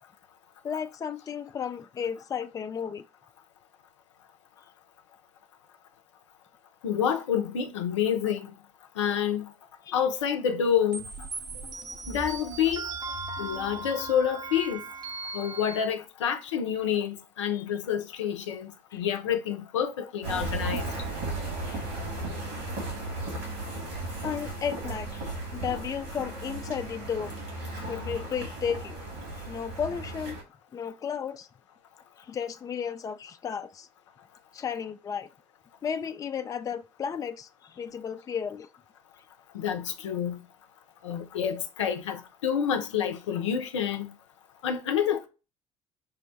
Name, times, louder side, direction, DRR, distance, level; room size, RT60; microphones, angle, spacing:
voice 1, 0.6-3.0 9.9-10.0 17.5-17.6 18.9-19.0 21.7-21.8 24.2-27.4 27.8-29.0 29.3-30.4 30.7-31.5 32.2-33.9 34.5-35.3 35.8-38.7, left 7 dB, 25° left, 0.4 m, -34 dB
voice 2, 6.8-8.5 9.0-9.5 9.9-11.1 12.1-12.8 13.4-14.8 15.3-20.9 39.5-40.4 41.0-44.1 44.6-45.3, left 8 dB, 80° left, 0.5 m, -28 dB
sound 1, 10.9-15.9, right 3 dB, 25° right, 0.8 m, -38 dB
sound 2, 20.2-30.4, right 2 dB, 65° right, 2.0 m, -35 dB
5.5 x 2.1 x 2.6 m
figure-of-eight pair, 60°, 15 cm